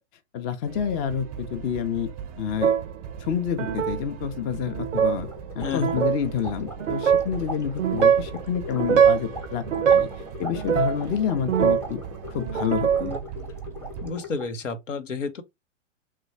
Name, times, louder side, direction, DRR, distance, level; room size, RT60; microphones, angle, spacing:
voice 1, 0.3-2.1 2.4-2.7 3.2-5.3 5.5-10.1 10.4-12.0 12.3-13.1, left 8 dB, 25° left, 0.5 m, -28 dB
sound 1, 0.7-14.1, right 8 dB, 30° right, 0.5 m, -39 dB
sound 2, 2.6-3.0 3.6-4.0 4.7-5.2 5.7-6.2 6.8-7.3 7.8-8.3 8.7-9.3 9.7-10.2 10.6-12.0 12.4-13.2, right 8 dB, 90° right, 0.5 m, -22 dB
sound 3, 5.2-14.6, left 3 dB, 5° left, 0.8 m, -40 dB
voice 2, 5.6-6.0 14.0-15.4, left 4 dB, 80° left, 0.8 m, -31 dB
3.2 x 2.2 x 4.2 m
figure-of-eight pair, 105°, 37 cm